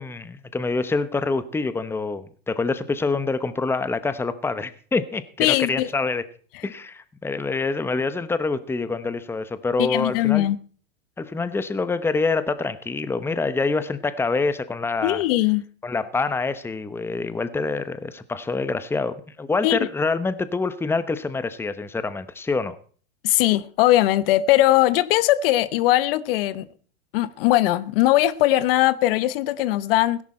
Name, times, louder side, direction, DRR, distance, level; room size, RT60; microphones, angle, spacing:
voice 1, 0.0-6.2 6.6-10.5 11.2-15.2 15.8-22.8, left 3 dB, 5° left, 0.9 m, -26 dB
voice 2, 5.4-5.9 9.8-10.6 15.0-15.6 19.6-19.9 23.2-26.7 27.1-30.2, left 15 dB, 65° left, 0.9 m, -20 dB
16.5 x 11.0 x 4.3 m
hypercardioid pair, 120°, 31 cm